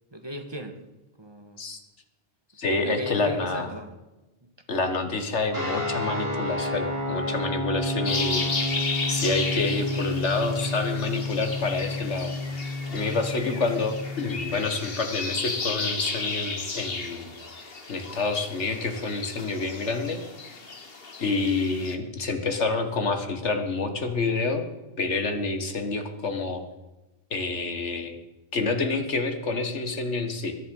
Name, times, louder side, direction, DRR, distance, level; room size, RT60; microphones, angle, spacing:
voice 1, 0.1-0.8 1.2-1.6 2.8-3.9, right 1 dB, 25° right, 6 dB, 1.6 m, -37 dB
voice 2, 2.6-3.7 4.7-8.8 9.1-12.3 12.9-20.6 21.2-24.6 25.0-26.6 27.3-28.2 28.5-30.6, left 3 dB, 85° left, 6 dB, 2.0 m, -28 dB
sound 1, 5.5-14.5, left 1 dB, 60° right, 5.5 m, -30 dB
sound 2, 8.1-22.0, left 4 dB, 55° left, 1.8 m, -34 dB
21.5 x 10.5 x 5.5 m, 1.1 s
omnidirectional pair, 1.2 m